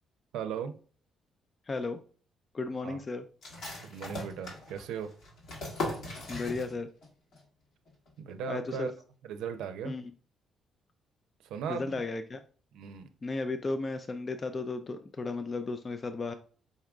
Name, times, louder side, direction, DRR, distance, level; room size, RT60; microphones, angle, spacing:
voice 1, 0.3-0.7 2.8-3.0 3.8-5.1 8.2-8.9 9.2-9.9 11.4-12.0 12.7-13.1, right 7 dB, 90° right, 0.5 m, -37 dB
voice 2, 1.7-2.0 2.5-3.2 6.3-6.9 8.5-8.9 9.8-10.1 11.7-12.4 13.2-16.3, left 3 dB, 35° left, 0.4 m, -34 dB
sound 1, 3.4-7.1 7.3-7.4 7.9-8.3, left 2 dB, 75° left, 1.8 m, -39 dB
5.3 x 3.6 x 2.3 m
cardioid pair, 90°, 0 cm